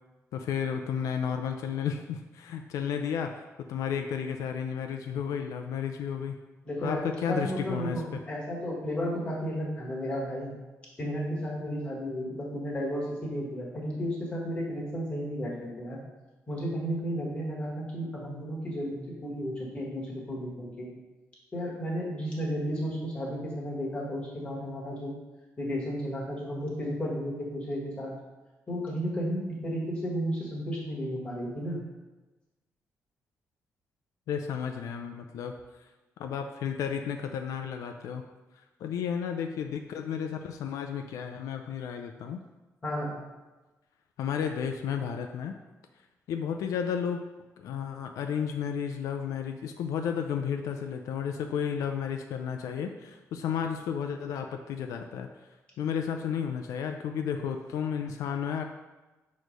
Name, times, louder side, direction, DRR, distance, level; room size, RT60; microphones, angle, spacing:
voice 1, 0.3-3.4 3.7-6.4 6.8-8.2 34.3-35.5 36.2-38.2 38.8-42.4 44.2-45.5 46.3-47.3 47.6-55.3 55.8-58.6, left 7 dB, 85° left, 5 dB, 0.4 m, -32 dB
voice 2, 6.6-10.5 11.0-16.0 16.5-20.9 21.5-25.1 25.6-28.1 28.7-31.8 42.8-43.2, equal, 20° left, -4 dB, 1.5 m, -33 dB
6.3 x 3.2 x 5.1 m, 1.2 s
cardioid pair, 175°, 6 cm